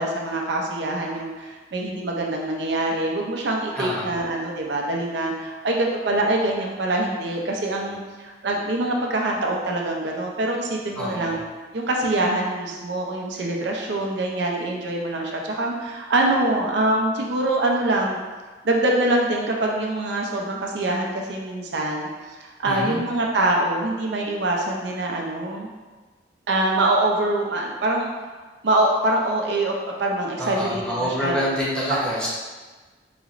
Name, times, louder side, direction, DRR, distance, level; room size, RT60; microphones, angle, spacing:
voice 1, 0.0-11.4 11.7-18.2 18.6-22.1 22.4-25.7 26.5-28.1 28.6-31.4, right 2 dB, 65° right, -1 dB, 0.6 m, -24 dB
voice 2, 3.7-4.1 10.9-11.4 22.6-23.0 30.4-32.3, equal, 5° left, -8 dB, 0.8 m, -27 dB
4.1 x 3.0 x 2.4 m, 1.3 s
head